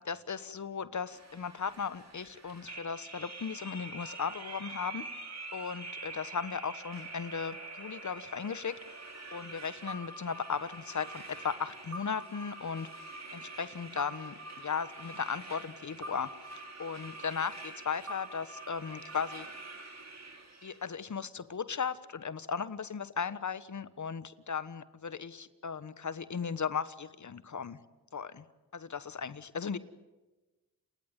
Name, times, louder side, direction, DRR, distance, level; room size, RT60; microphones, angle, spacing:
voice 1, 0.0-5.0 5.5-13.0 13.3-16.3 16.8-19.5 20.6-27.8 28.1-28.4 28.7-29.8, left 6 dB, 45° left, 15 dB, 1.3 m, -37 dB
sound 1, 1.1-20.9, right 2 dB, 40° right, 5.4 m, -45 dB
30.0 x 19.5 x 9.1 m, 1.2 s
supercardioid pair, 50°, 41 cm